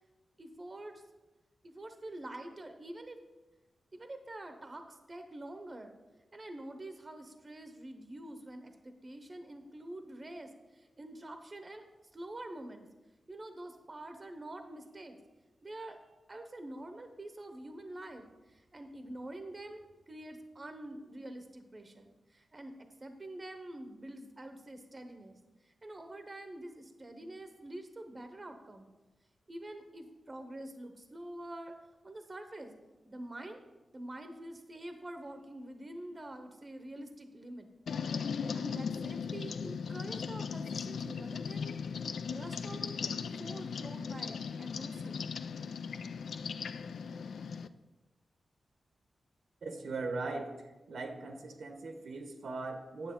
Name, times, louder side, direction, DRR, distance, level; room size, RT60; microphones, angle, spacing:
voice 1, 0.4-1.0 1.6-3.2 3.9-6.0 6.3-11.8 12.1-12.9 13.3-15.2 15.6-16.0 16.3-28.9 29.5-31.7 32.0-32.7 33.1-33.6 33.9-37.7 38.5-41.8 42.2-45.3, right 1 dB, 30° right, 6 dB, 0.7 m, -46 dB
sound 1, 37.9-47.7, left 6 dB, 80° left, 0.3 m, -38 dB
voice 2, 49.6-50.5 50.9-53.1, right 3 dB, 80° right, 5 dB, 1.0 m, -39 dB
9.3 x 6.9 x 3.7 m, 1.1 s
wide cardioid pair, 100°, 0 cm